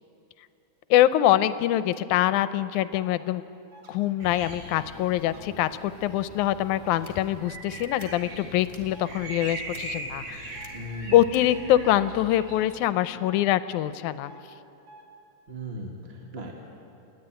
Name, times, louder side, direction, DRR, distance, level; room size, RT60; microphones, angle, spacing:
voice 1, 0.9-3.4 3.9-10.6 11.1-14.3, left 13 dB, 80° left, 13 dB, 2.1 m, -24 dB
sound 1, 2.9-3.1 3.7-3.9 4.5-4.7 5.2-5.4 6.8-7.0 8.0-8.2 8.9-9.1 10.5-10.7 11.5-11.7 12.3-12.5 13.2-13.4 14.2-14.4 14.9-15.0, right 1 dB, 85° right, 3.9 m, -50 dB
sound 2, 4.2-12.9, right 2 dB, 65° right, 4.3 m, -41 dB
sound 3, 6.8-7.1 7.7-8.1 8.6-8.8 9.7-9.8 10.5-10.7 11.3-11.4, left 2 dB, 10° left, 1.4 m, -50 dB
voice 2, 10.7-11.2 15.5-16.5, right 1 dB, 25° right, 0 dB, 1.8 m, -37 dB
29.0 x 11.0 x 9.1 m, 2.7 s
omnidirectional pair, 3.5 m